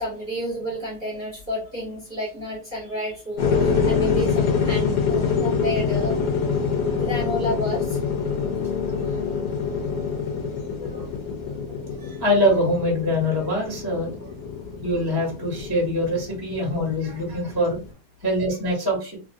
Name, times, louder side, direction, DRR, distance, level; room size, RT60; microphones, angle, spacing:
voice 1, 0.0-6.2 7.0-8.0 10.6-10.7 12.0-12.2, equal, 40° right, -7 dB, 1.3 m, -31 dB
sound 1, 3.4-17.9, left 5 dB, 90° left, 1.3 m, -25 dB
voice 2, 12.2-14.3 14.8-17.8 18.2-19.2, equal, 15° right, -3 dB, 1.2 m, -24 dB
3.3 x 2.6 x 2.3 m, 0.32 s
omnidirectional pair, 1.7 m